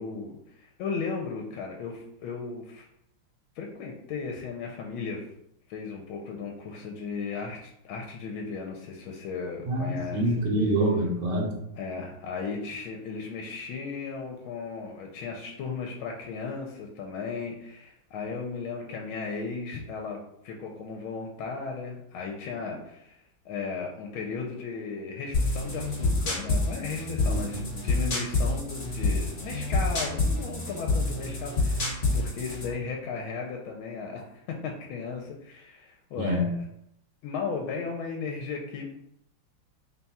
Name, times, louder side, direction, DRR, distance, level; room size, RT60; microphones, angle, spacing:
voice 1, 0.0-2.9 3.6-5.3 5.7-10.4 11.7-23.1 23.4-36.5 37.2-38.9, left 5 dB, 80° left, 1 dB, 1.4 m, -36 dB
voice 2, 9.7-11.5 27.3-27.4 36.2-36.5, right 1 dB, 85° right, -2 dB, 1.8 m, -26 dB
sound 1, 25.3-32.7, left 2 dB, 40° left, 1.4 m, -27 dB
3.9 x 2.3 x 4.1 m, 0.76 s
omnidirectional pair, 2.3 m